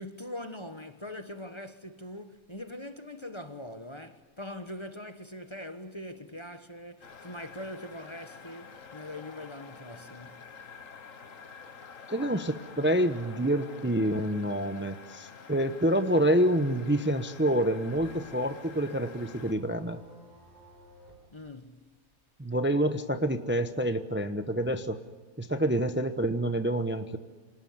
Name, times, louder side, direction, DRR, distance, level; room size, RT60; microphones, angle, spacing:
voice 1, 0.0-10.5 21.3-21.9, left 1 dB, 20° left, 1.2 m, -42 dB
sound 1, 7.0-19.5, left 5 dB, 65° left, 1.8 m, -48 dB
voice 2, 12.1-20.0 22.4-25.0 25.4-27.2, right 1 dB, 10° right, 0.9 m, -27 dB
sound 2, 17.9-22.6 23.0-24.7, equal, 30° right, 6.4 m, -55 dB
27.0 x 19.0 x 9.6 m
omnidirectional pair, 1.5 m